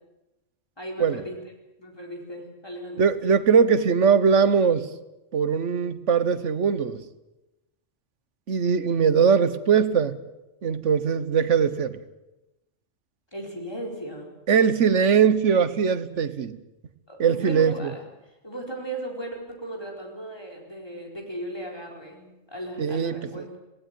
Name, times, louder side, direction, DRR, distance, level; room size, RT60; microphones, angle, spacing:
voice 1, 0.8-1.4 1.8-3.0 13.3-14.3 17.1-18.0 18.4-23.6, right 1 dB, 20° left, 1 dB, 4.4 m, -36 dB
voice 2, 3.0-4.9 5.3-7.0 8.5-10.1 10.6-12.0 14.5-16.6 17.2-17.9 22.8-23.5, right 6 dB, 75° right, 14 dB, 1.4 m, -21 dB
18.0 x 18.0 x 9.2 m, 0.97 s
omnidirectional pair, 1.3 m